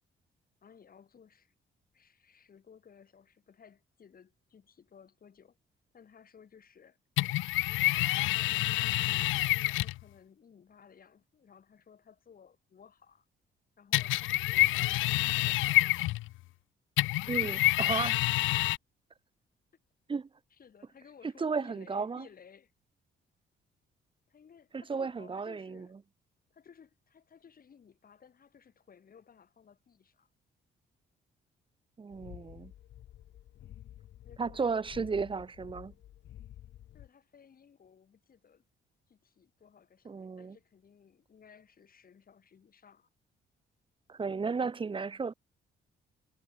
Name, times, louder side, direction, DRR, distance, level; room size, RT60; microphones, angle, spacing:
voice 1, 0.6-1.5 1.9-5.6 5.9-7.0 8.0-13.3 13.8-16.2 20.5-22.7 24.3-26.0 26.5-30.3 34.2-35.7 36.9-38.6 39.1-43.1, left 7 dB, 45° left, 4.2 m, -58 dB
sound 1, 7.2-10.0 13.9-16.4 17.0-18.8, left 18 dB, 85° left, 0.4 m, -28 dB
voice 2, 17.3-18.2 20.1-20.3 21.4-22.3 24.7-25.9 32.0-32.7 34.4-35.9 40.0-40.6 44.1-45.3, right 5 dB, 25° right, 0.8 m, -34 dB
sound 2, 32.1-37.1, left 12 dB, 70° left, 1.0 m, -51 dB
cardioid pair, 90°, 20 cm